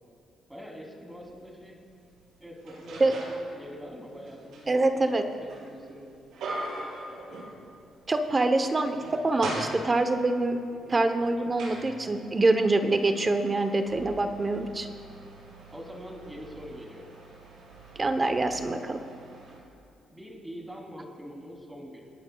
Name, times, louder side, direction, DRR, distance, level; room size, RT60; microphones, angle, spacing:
voice 1, 0.5-1.8 2.4-3.2 3.5-6.1 6.5-7.5 8.4-8.7 10.7-11.0 15.7-17.1 20.1-22.1, equal, 10° right, -1 dB, 3.1 m, -44 dB
sound 1, 1.2-1.3 1.9-3.5 3.9-8.0 8.3-8.4 8.8-10.3 11.0-19.6, right 2 dB, 85° right, 3.6 m, -42 dB
voice 2, 4.7-5.2 8.1-10.6 10.9-14.9 18.0-19.0, right 2 dB, 25° right, 8 dB, 0.8 m, -25 dB
27.5 x 11.0 x 2.3 m, 2.6 s
cardioid pair, 90°, 0 cm